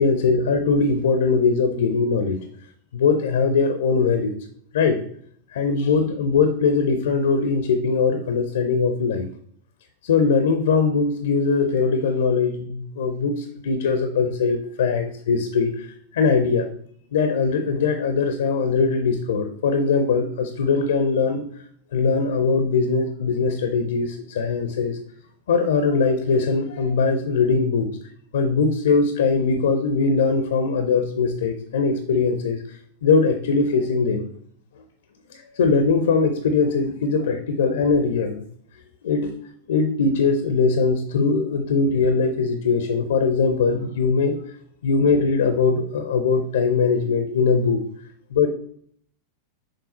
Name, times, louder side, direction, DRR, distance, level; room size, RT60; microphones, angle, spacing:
voice 1, 0.0-2.4 2.9-4.3 4.7-5.0 5.5-9.3 10.0-15.7 16.1-16.7 17.1-21.4 21.9-25.0 25.5-27.9 28.3-32.6 33.0-34.2 35.6-38.4 39.0-39.3 39.7-44.4 44.8-47.8 48.3-48.5, left 4 dB, 60° left, 8 dB, 0.6 m, -21 dB
6.6 x 3.8 x 4.1 m, 0.62 s
figure-of-eight pair, 90°, 0 cm